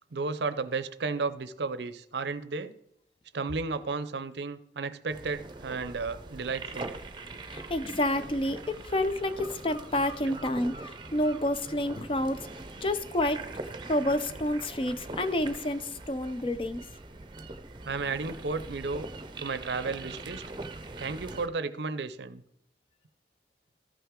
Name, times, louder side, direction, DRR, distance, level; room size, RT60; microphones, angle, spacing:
voice 1, 0.1-2.7 3.3-6.9 17.9-19.1 19.4-20.4 21.0-22.4, right 4 dB, 70° right, 13 dB, 0.6 m, -33 dB
sound 1, 5.1-21.5, right 2 dB, 25° right, 0.6 m, -42 dB
voice 2, 7.5-12.5 12.8-13.4 13.8-16.8, left 1 dB, 30° left, 11 dB, 0.5 m, -29 dB
14.0 x 5.8 x 3.7 m, 0.77 s
head